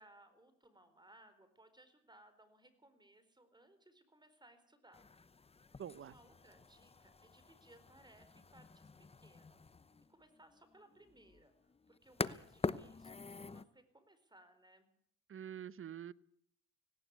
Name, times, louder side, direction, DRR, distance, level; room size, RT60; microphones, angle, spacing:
voice 1, 0.0-5.1 5.9-9.7 10.1-11.5 11.9-14.9, right 1 dB, 15° right, 11 dB, 4.3 m, -64 dB
sound 1, 4.9-13.6, left 4 dB, 20° left, 0.8 m, -46 dB
voice 2, 5.8-6.1 15.3-16.1, right 9 dB, 45° right, 19 dB, 0.9 m, -46 dB
18.5 x 18.0 x 8.3 m, 0.64 s
cardioid pair, 90°, 30 cm